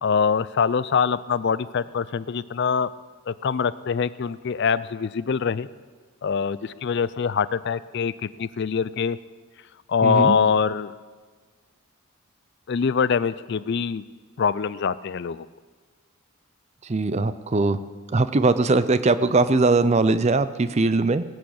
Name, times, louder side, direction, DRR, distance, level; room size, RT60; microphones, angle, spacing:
voice 1, 0.0-2.9 3.3-5.7 6.2-9.2 9.9-10.9 12.7-14.0 14.4-15.5, left 6 dB, 50° left, 17 dB, 0.4 m, -24 dB
voice 2, 10.0-10.4 16.8-17.8 18.1-21.2, right 3 dB, 30° right, 13 dB, 0.5 m, -20 dB
19.0 x 6.3 x 8.6 m, 1.4 s
head